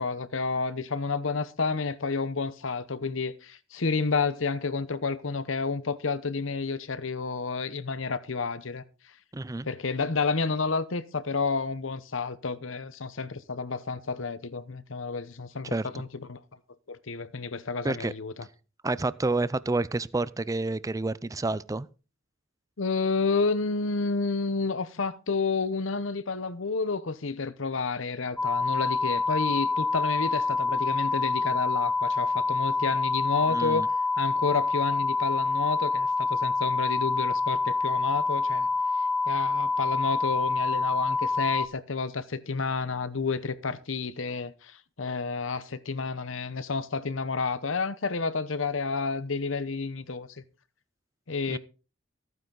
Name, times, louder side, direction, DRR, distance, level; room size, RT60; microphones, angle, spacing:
voice 1, 0.0-8.8 9.6-16.4 16.9-18.5 22.8-33.9 34.2-38.7 39.3-50.3 51.3-51.6, left 4 dB, 70° left, 0.9 m, -30 dB
voice 2, 9.3-9.7 15.7-15.9 17.8-18.1 18.8-21.9 33.5-33.9 51.5-51.6, right 2 dB, 15° right, 0.5 m, -29 dB
sound 1, 28.4-41.7, left 3 dB, 5° left, 0.9 m, -27 dB
14.5 x 9.4 x 3.9 m
head